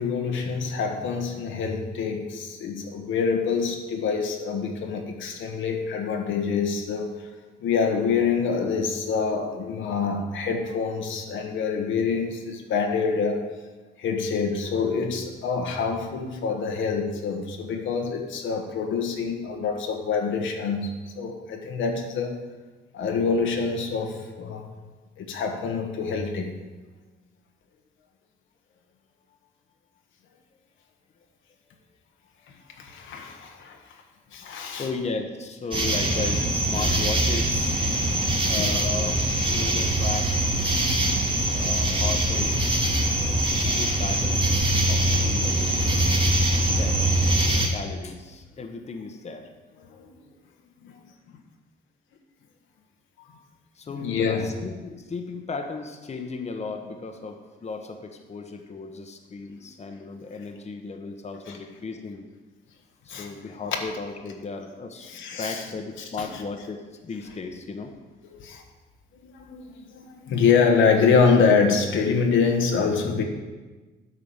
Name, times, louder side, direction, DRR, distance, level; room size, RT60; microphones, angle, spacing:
voice 1, 0.0-7.3 7.6-13.5 14.0-22.4 22.9-24.7 25.2-26.6 32.8-33.8 34.3-34.9 36.8-37.0 37.9-38.8 40.8-40.9 49.9-50.1 50.8-51.0 53.2-53.3 53.9-54.5 61.5-61.6 63.1-63.3 65.1-65.6 66.2-66.3 68.3-68.6 69.2-73.2, left 5 dB, 75° left, 3 dB, 1.2 m, -26 dB
voice 2, 34.8-37.8 38.5-39.2 39.5-40.6 41.5-42.7 43.5-46.0 46.5-49.5 53.7-62.3 63.0-67.9, left 4 dB, 35° left, 4 dB, 1.0 m, -35 dB
sound 1, 35.7-47.7, right 1 dB, 25° right, 1.9 m, -23 dB
8.9 x 4.9 x 7.1 m, 1.3 s
cardioid pair, 90°, 20 cm